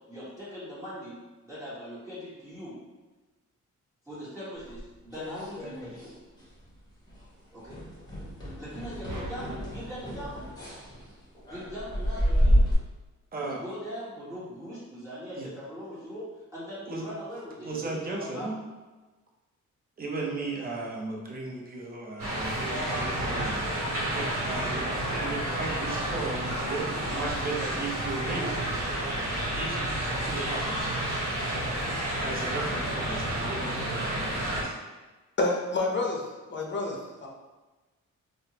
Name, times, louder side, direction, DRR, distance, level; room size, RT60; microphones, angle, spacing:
voice 1, 0.1-1.2 1.4-2.8 4.0-6.1 7.5-7.8 8.6-10.5 11.5-12.6 13.4-18.6 20.4-20.5, equal, 10° right, -12 dB, 1.3 m, -40 dB
sound 1, 4.7-6.1 6.4-6.8 7.1-7.3 7.7-12.7, equal, 15° left, 1.0 m, -29 dB
sound 2, 9.0-11.5, right 1 dB, 75° right, 0.7 m, -44 dB
voice 2, 13.3-13.6 15.4-15.5 16.9-17.0 17.6-18.6 20.0-28.6 29.5-29.8 30.2-30.9 32.2-34.7, right 2 dB, 30° right, -2 dB, 0.7 m, -36 dB
sound 3, 22.2-34.6, right 1 dB, 50° right, 1.1 m, -30 dB
voice 3, 35.4-37.3, left 2 dB, 35° left, 0 dB, 0.6 m, -29 dB
3.3 x 2.1 x 2.9 m, 1.2 s
cardioid pair, 105°, 31 cm